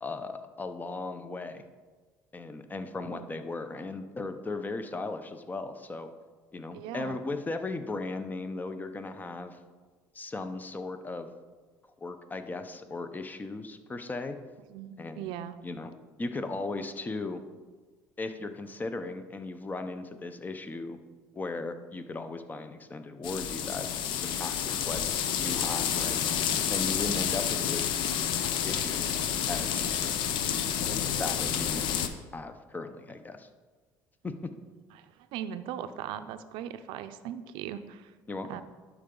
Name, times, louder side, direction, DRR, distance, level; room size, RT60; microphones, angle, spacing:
voice 1, 0.0-1.6 2.3-6.1 6.5-9.6 10.1-11.3 12.0-14.4 15.0-15.3 15.6-15.9 16.2-17.4 18.2-21.0 21.3-23.9 24.1-25.0 25.4-26.2 26.7-28.0 28.6-29.0 29.5-29.9 31.2-31.8 32.3-33.5 34.2-34.5 38.3-38.5, left 3 dB, 20° left, 9 dB, 0.7 m, -37 dB
voice 2, 6.7-7.2 14.7-15.6 34.9-35.1 35.3-38.1 38.5-38.6, right 10 dB, 75° right, 11 dB, 0.5 m, -39 dB
sound 1, 23.2-32.1, left 9 dB, 70° left, 0.6 m, -29 dB
11.5 x 4.8 x 3.8 m, 1.4 s
supercardioid pair, 90°, 9 cm